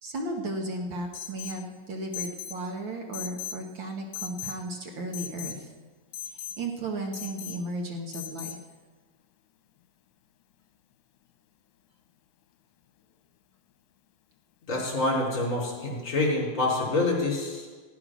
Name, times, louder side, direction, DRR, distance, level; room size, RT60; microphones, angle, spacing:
voice 1, 0.0-5.7 6.3-8.6, right 1 dB, 60° right, 0 dB, 1.2 m, -35 dB
Alarm, 1.1-1.6 2.1-2.6 3.1-3.6 4.1-4.6 5.1-5.6 6.1-6.6 7.1-7.6 8.1-8.6, left 9 dB, 75° left, 2.5 m, -38 dB
voice 2, 14.7-17.7, left 2 dB, 25° left, -4 dB, 4.0 m, -27 dB
15.5 x 9.7 x 6.1 m, 1.5 s
omnidirectional pair, 4.3 m